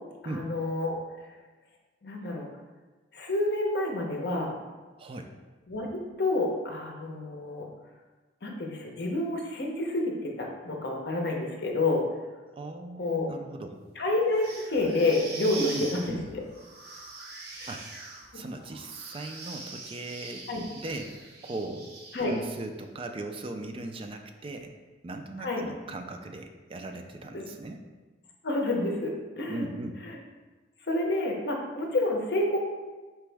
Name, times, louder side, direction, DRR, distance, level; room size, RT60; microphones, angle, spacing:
voice 1, 0.2-1.0 2.0-2.5 3.1-4.6 5.7-7.7 8.4-12.1 13.0-13.3 14.0-14.4 14.7-16.0 16.3-16.4 17.6-17.7 18.3-18.4 20.5-20.6 22.1-22.3 25.4-25.7 27.3-27.5 28.4-29.7 30.9-32.6, left 2 dB, 60° left, 1 dB, 0.7 m, -29 dB
voice 2, 5.0-5.3 12.5-13.8 15.7-16.2 17.6-17.8 18.3-20.5 20.8-21.9 22.2-24.7 25.0-27.8 29.4-30.0, right 2 dB, 30° right, 5 dB, 0.3 m, -38 dB
sound 1, 14.3-22.6, right 3 dB, 60° right, 0.7 m, -43 dB
4.6 x 3.0 x 3.4 m, 1.3 s
head